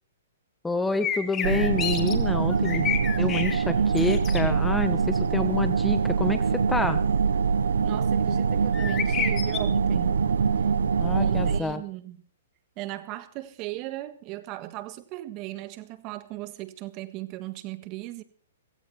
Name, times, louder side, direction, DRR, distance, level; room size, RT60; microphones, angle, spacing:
voice 1, 0.6-2.9 3.2-7.0 11.0-11.8, left 2 dB, 5° left, 1.2 m, -28 dB
sound 1, 1.0-2.1 2.5-3.6 3.9-4.4 8.7-9.6, left 8 dB, 20° left, 2.3 m, -30 dB
sound 2, 1.4-11.6, right 6 dB, 85° right, 1.2 m, -24 dB
voice 2, 7.8-10.2 11.1-12.2 12.8-18.2, right 17 dB, 35° right, 1.6 m, -37 dB
16.5 x 16.5 x 4.4 m
hypercardioid pair, 135°, 0 cm